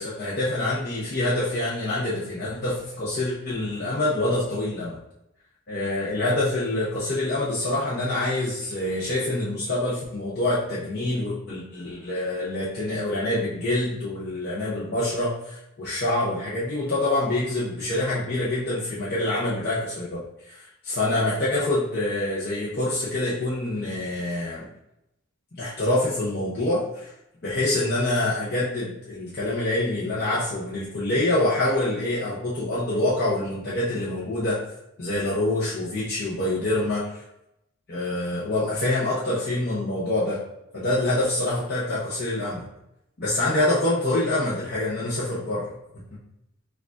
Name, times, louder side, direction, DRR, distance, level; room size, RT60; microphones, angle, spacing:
voice 1, 0.0-5.0 5.7-24.7 25.6-27.1 27.4-34.6 35.0-37.2 37.9-40.4 40.7-42.7 43.2-45.7, left 1 dB, 45° left, -8 dB, 0.7 m, -26 dB
6.4 x 2.4 x 2.5 m, 0.84 s
head